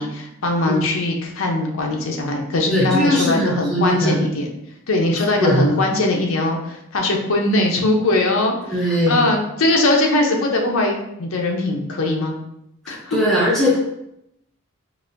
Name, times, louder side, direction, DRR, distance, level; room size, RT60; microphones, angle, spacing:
voice 1, 0.0-4.5 4.9-8.5 9.1-12.3 12.9-13.2, left 2 dB, 65° left, 1 dB, 0.6 m, -20 dB
voice 2, 2.7-4.2 5.2-5.8 8.6-9.2 12.8-13.8, equal, ahead, -6 dB, 0.4 m, -20 dB
3.9 x 2.6 x 2.5 m, 0.80 s
head